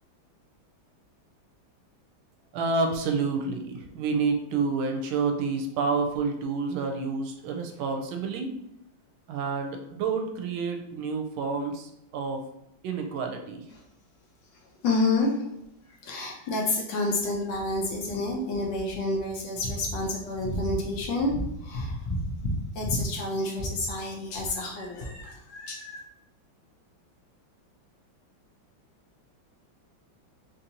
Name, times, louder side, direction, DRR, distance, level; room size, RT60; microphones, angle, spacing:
voice 1, 2.5-8.5 9.3-12.4 12.8-13.6, right 4 dB, 85° right, 3 dB, 1.4 m, -29 dB
voice 2, 14.8-15.5 16.0-26.0, left 2 dB, 70° left, 0 dB, 1.2 m, -29 dB
3.9 x 2.6 x 2.8 m, 0.78 s
omnidirectional pair, 2.2 m